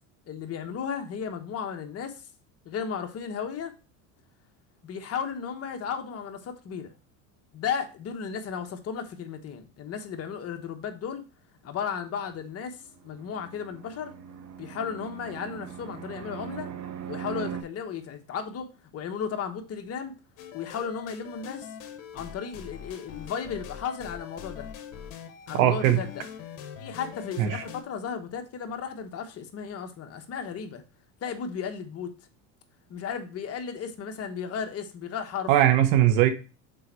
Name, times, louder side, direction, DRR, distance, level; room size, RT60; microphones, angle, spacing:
voice 1, 0.3-2.2 2.6-3.7 4.8-6.9 7.5-11.2 11.6-14.1 14.6-16.7 17.1-18.7 18.9-20.1 20.5-21.7 22.1-24.7 25.5-26.2 26.8-30.8 31.2-32.1 32.9-35.5, left 7 dB, 40° left, 1.3 m, -34 dB
Fixed-wing aircraft airplane, 12.7-17.6, right 9 dB, 45° right, 1.2 m, -40 dB
sound 1, 20.4-27.8, left 8 dB, 60° left, 1.5 m, -43 dB
voice 2, 25.5-26.0 27.4-27.6 35.5-36.3, right 12 dB, 70° right, 1.4 m, -20 dB
6.8 x 4.5 x 4.4 m
supercardioid pair, 115°, 38 cm